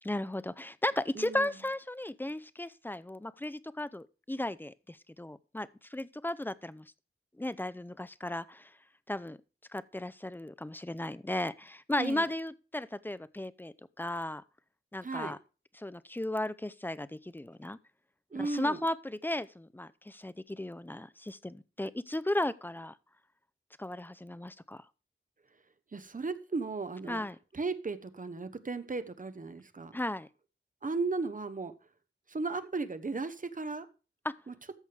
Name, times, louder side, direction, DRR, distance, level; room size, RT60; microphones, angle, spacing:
voice 1, 0.0-6.9 7.4-8.7 9.1-9.4 9.7-14.4 14.9-15.4 15.8-17.8 18.3-23.0 23.8-24.8 27.1-27.4 29.9-30.3 34.2-34.3, left 1 dB, 10° left, 0.6 m, -35 dB
voice 2, 1.1-1.5 12.0-12.3 15.0-15.3 18.3-18.8 25.9-27.2 27.5-30.0 30.8-31.7 32.3-33.9 34.5-34.6, right 3 dB, 40° right, 1.0 m, -35 dB
14.0 x 6.4 x 3.4 m
wide cardioid pair, 95°, 21 cm